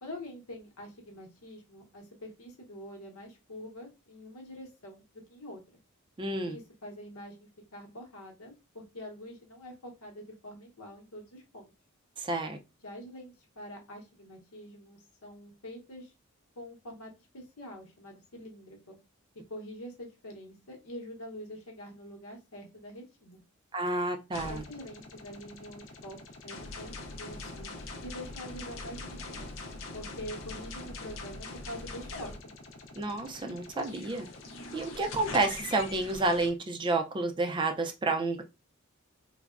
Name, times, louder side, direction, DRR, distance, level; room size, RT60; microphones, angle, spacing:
voice 1, 0.0-5.6 6.4-7.4 7.7-11.7 12.8-16.1 16.6-19.0 19.5-23.4 24.4-26.2 26.4-29.5 29.9-32.3, equal, 90° left, 0.9 m, -45 dB
voice 2, 6.2-6.6 12.2-12.6 23.7-24.6 33.0-34.3 34.7-38.4, right 2 dB, 20° right, 0.3 m, -30 dB
sound 1, 24.3-36.5, left 3 dB, 65° left, 0.5 m, -43 dB
3.3 x 2.0 x 2.3 m
head